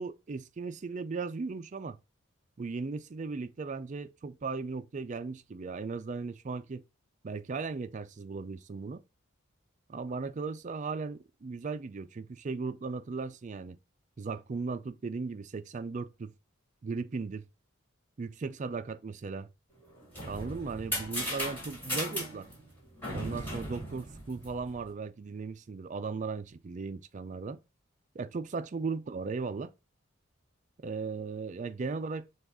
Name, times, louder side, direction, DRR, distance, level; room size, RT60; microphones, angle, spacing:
voice 1, 0.0-2.0 2.6-6.8 7.2-9.0 9.9-13.8 14.2-16.3 16.8-17.4 18.2-19.5 20.2-22.5 23.1-27.6 28.1-29.7 30.8-32.3, right 4 dB, 35° right, 0.4 m, -37 dB
sound 1, 19.8-24.9, equal, 10° left, 1.9 m, -37 dB
6.3 x 2.4 x 3.5 m
head